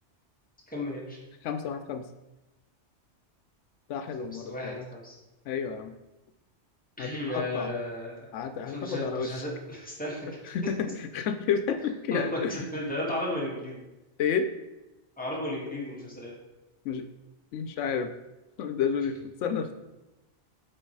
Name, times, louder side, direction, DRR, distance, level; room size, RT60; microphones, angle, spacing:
voice 1, 0.7-1.2 4.2-5.2 7.0-8.3 8.7-10.4 12.1-13.8 15.2-16.3, left 1 dB, 5° left, -4 dB, 1.9 m, -34 dB
voice 2, 1.4-2.1 3.9-4.8 5.5-5.9 7.0-7.7 8.3-9.4 10.5-12.6 14.2-14.5 16.8-17.1 17.5-18.1 18.6-19.8, left 6 dB, 85° left, 9 dB, 0.9 m, -30 dB
7.9 x 4.6 x 4.6 m, 1.0 s
omnidirectional pair, 1.2 m